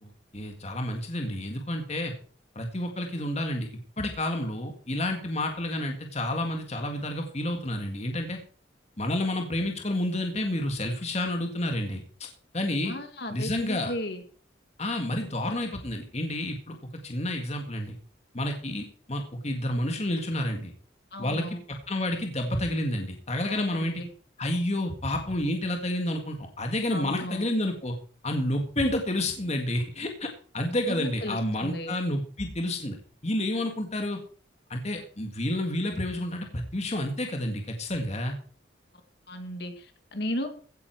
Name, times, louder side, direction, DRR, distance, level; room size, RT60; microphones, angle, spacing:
voice 1, 0.0-2.1 2.6-3.7 4.0-8.4 9.0-12.0 12.5-12.9 13.3-13.9 14.8-16.8 17.0-18.0 18.3-20.7 21.2-24.0 24.4-27.9 28.2-30.3 30.5-33.0 33.2-34.2 34.7-38.4, left 1 dB, 35° left, 3 dB, 1.9 m, -30 dB
voice 2, 12.9-14.2 21.1-21.6 23.5-24.1 26.9-27.4 30.9-31.9 39.3-40.5, left 1 dB, 55° left, 7 dB, 2.2 m, -35 dB
16.0 x 9.7 x 4.6 m, 0.43 s
head